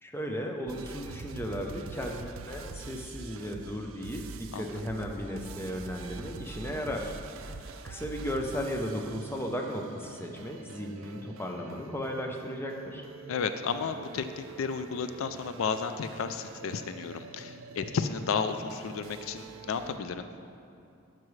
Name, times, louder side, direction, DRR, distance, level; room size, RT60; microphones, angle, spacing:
voice 1, 0.0-7.1 7.4-13.1, equal, 10° left, 2 dB, 0.5 m, -35 dB
sound 1, 0.7-20.0, right 4 dB, 70° right, 0.4 m, -46 dB
voice 2, 13.3-20.3, left 5 dB, 75° left, 9 dB, 0.4 m, -33 dB
12.0 x 6.0 x 3.2 m, 2.6 s
head